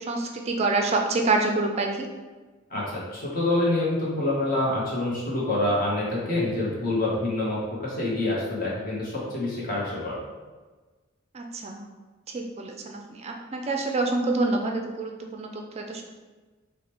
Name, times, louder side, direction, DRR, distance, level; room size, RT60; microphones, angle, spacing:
voice 1, 0.1-2.1 11.3-11.8 12.3-16.0, right 3 dB, 30° right, 2 dB, 0.4 m, -27 dB
voice 2, 2.7-10.2, left 2 dB, 40° left, -5 dB, 1.0 m, -26 dB
4.9 x 2.1 x 3.0 m, 1.3 s
head